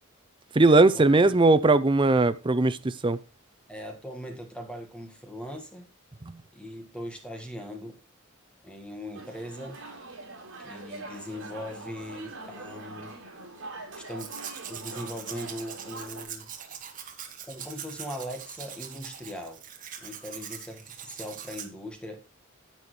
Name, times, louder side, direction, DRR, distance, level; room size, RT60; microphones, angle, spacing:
voice 1, 0.6-3.2, right 2 dB, 25° right, 0.5 m, -19 dB
voice 2, 3.7-5.9 6.5-8.0 8.6-9.8 10.6-13.2 14.0-14.3 14.7-16.5 17.5-19.6 20.0-22.2, equal, 5° left, 1.6 m, -40 dB
sound 1, 9.1-16.2, right 2 dB, 60° right, 4.3 m, -43 dB
Domestic sounds home sounds, 14.1-21.7, right 8 dB, 40° right, 1.4 m, -42 dB
10.5 x 8.8 x 3.2 m
head